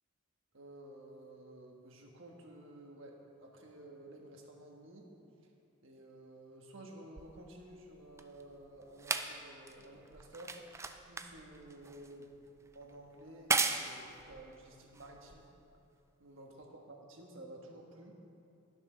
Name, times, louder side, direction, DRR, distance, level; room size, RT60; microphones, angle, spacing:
voice 1, 0.5-5.1 5.8-10.6 11.1-12.3 12.7-15.5 16.2-18.2, right 1 dB, 65° right, 1 dB, 1.4 m, -52 dB
sound 1, 7.2-15.8 16.6-16.7, right 4 dB, 15° right, 0.3 m, -39 dB
12.0 x 7.1 x 6.1 m, 2.7 s
head